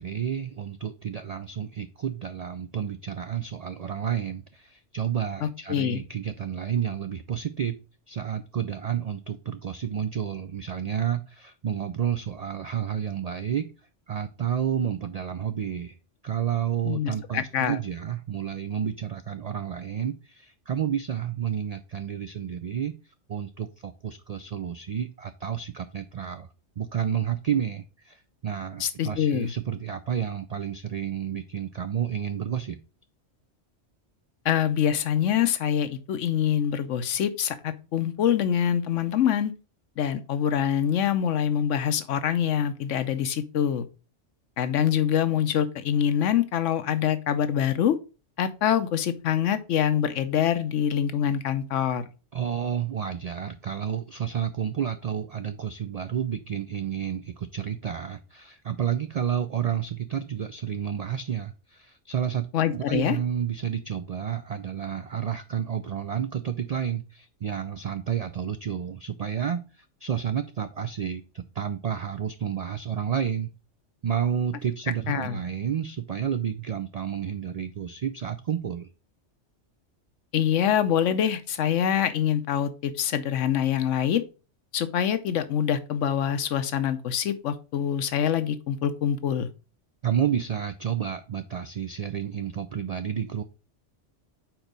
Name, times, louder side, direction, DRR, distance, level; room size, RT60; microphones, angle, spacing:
voice 1, 0.0-7.8 8.1-13.7 14.1-16.0 16.2-22.9 23.3-26.5 26.8-32.8 52.3-62.5 62.7-73.5 74.0-78.9 90.0-93.4, right 9 dB, 90° right, 10 dB, 0.3 m, -30 dB
voice 2, 5.4-6.0 16.8-17.8 28.8-29.5 34.4-39.5 40.0-43.9 44.6-48.0 48.4-52.0 62.5-63.2 75.1-75.4 80.3-84.2 84.7-89.5, left 9 dB, 85° left, 11 dB, 1.1 m, -25 dB
4.6 x 4.5 x 5.2 m, 0.32 s
omnidirectional pair, 1.2 m